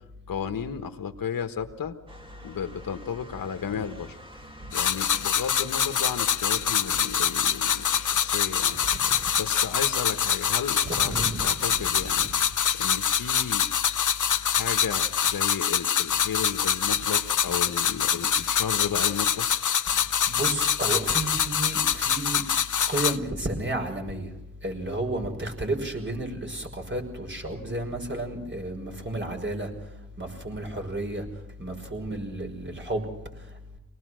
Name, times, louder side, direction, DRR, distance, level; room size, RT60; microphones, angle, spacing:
voice 1, 0.3-1.9 2.4-4.1 4.7-8.8 9.3-11.1 11.4-12.3 12.7-13.7 14.5-19.5, left 7 dB, 80° left, 6 dB, 1.4 m, -33 dB
Motor vehicle (road) / Siren, 2.1-9.4, equal, 15° right, 3.1 m, -48 dB
sound 1, 4.7-23.2, left 8 dB, 60° left, 0.8 m, -25 dB
voice 2, 10.8-11.4 20.3-22.4 22.9-24.3 24.6-29.7 30.2-31.2 31.6-33.1, right 1 dB, 35° right, 3 dB, 5.7 m, -31 dB
24.5 x 19.0 x 6.4 m, 0.93 s
cardioid pair, 55°, 34 cm